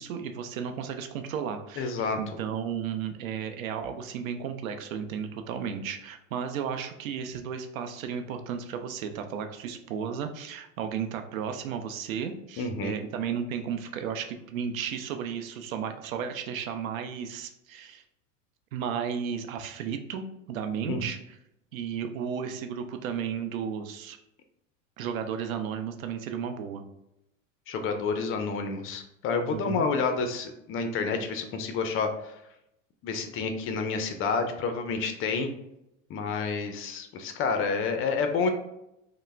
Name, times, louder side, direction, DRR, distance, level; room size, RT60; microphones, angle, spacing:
voice 1, 0.0-1.9 2.2-18.0 18.7-21.2 21.7-24.2 25.0-26.8 29.5-29.8, right 7 dB, 85° right, 7 dB, 0.6 m, -34 dB
voice 2, 1.8-2.2 12.6-13.0 20.9-21.0 27.7-32.3 33.0-35.5 36.1-38.5, left 4 dB, 35° left, 6 dB, 0.4 m, -29 dB
3.2 x 2.1 x 3.1 m, 0.84 s
hypercardioid pair, 100°, 40 cm